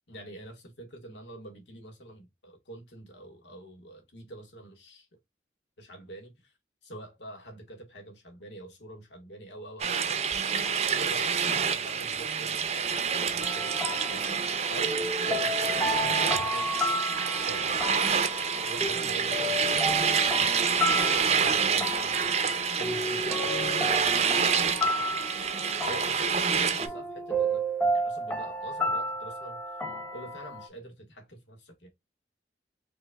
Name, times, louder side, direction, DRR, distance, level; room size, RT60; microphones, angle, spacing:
voice 1, 0.1-5.1 5.8-6.5 6.8-10.2 10.9-13.8 14.1-14.4 14.7-16.8 17.4-20.7 21.2-25.1 25.9-27.6 27.9-29.6 30.1-31.9, right 1 dB, 85° left, 1.6 m, -45 dB
sound 1, 9.8-26.9, right 6 dB, 35° right, 0.5 m, -27 dB
sound 2, 13.4-30.7, equal, 10° left, 0.7 m, -32 dB
5.2 x 3.0 x 2.2 m
head